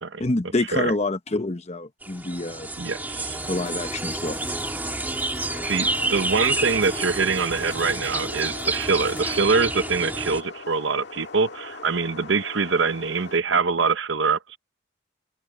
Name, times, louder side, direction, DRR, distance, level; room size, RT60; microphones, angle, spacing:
voice 1, 0.2-2.7 3.5-4.4, left 2 dB, 35° left, 1.0 m, -27 dB
sound 1, 2.0-10.4, right 2 dB, 10° right, 1.8 m, -29 dB
voice 2, 2.8-3.4 5.6-14.6, right 4 dB, 70° right, 0.9 m, -24 dB
sound 2, 3.3-13.9, left 6 dB, 85° left, 5.2 m, -49 dB
sound 3, 5.3-13.4, left 3 dB, 60° left, 1.9 m, -41 dB
open air
head